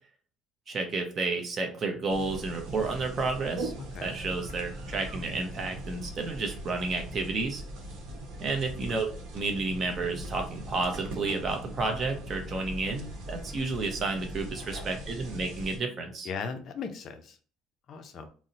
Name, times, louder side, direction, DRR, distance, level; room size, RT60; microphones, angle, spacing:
voice 1, 0.7-3.7 4.0-7.6 8.4-9.1 9.3-16.3, right 3 dB, 25° right, 3 dB, 0.6 m, -31 dB
sound 1, 2.1-15.8, right 1 dB, 80° right, 0.9 m, -40 dB
voice 2, 14.6-15.0 16.2-17.4 17.9-18.3, left 5 dB, 40° left, 7 dB, 0.4 m, -38 dB
2.7 x 2.0 x 3.8 m, 0.40 s
cardioid pair, 170°, 0 cm